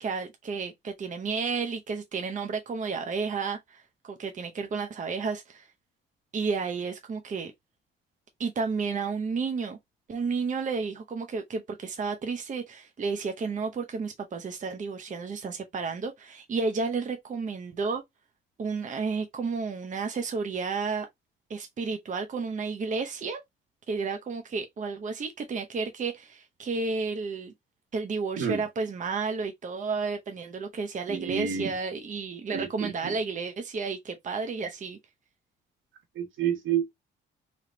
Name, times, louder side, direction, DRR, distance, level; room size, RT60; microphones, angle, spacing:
voice 1, 0.0-5.7 6.3-7.5 8.4-9.8 10.1-18.0 18.6-21.1 21.5-23.4 23.9-27.5 27.9-35.0, right 4 dB, 40° right, 0.8 m, -32 dB
voice 2, 31.1-31.7 32.5-33.1 36.1-36.8, right 8 dB, 80° right, 1.7 m, -29 dB
3.3 x 3.1 x 3.8 m
cardioid pair, 90°, 20 cm